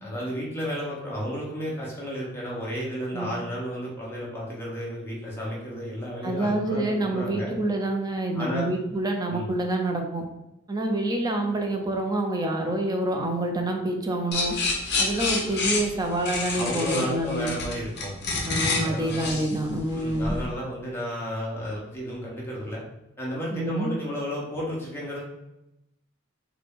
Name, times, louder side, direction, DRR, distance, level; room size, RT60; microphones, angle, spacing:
voice 1, 0.0-7.5 8.3-8.7 9.3-9.5 16.6-18.1 18.8-19.4 19.9-22.8 23.2-25.2, equal, 10° left, -5 dB, 1.0 m, -32 dB
voice 2, 6.2-10.2 10.7-14.5 15.0-17.5 18.4-20.4 23.5-23.9, right 1 dB, 20° right, 3 dB, 0.5 m, -27 dB
sound 1, 14.3-20.4, left 3 dB, 55° left, 0.8 m, -28 dB
4.1 x 2.2 x 3.5 m, 0.89 s
head